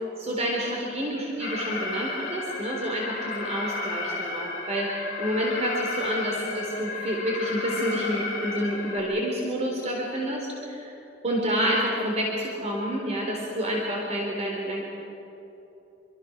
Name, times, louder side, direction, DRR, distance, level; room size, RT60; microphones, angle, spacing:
voice 1, 0.0-11.0 11.2-14.9, equal, 35° right, -2 dB, 4.0 m, -29 dB
Alarm, 1.4-9.0, left 3 dB, 45° left, 7.2 m, -33 dB
27.5 x 24.5 x 6.4 m, 3.0 s
head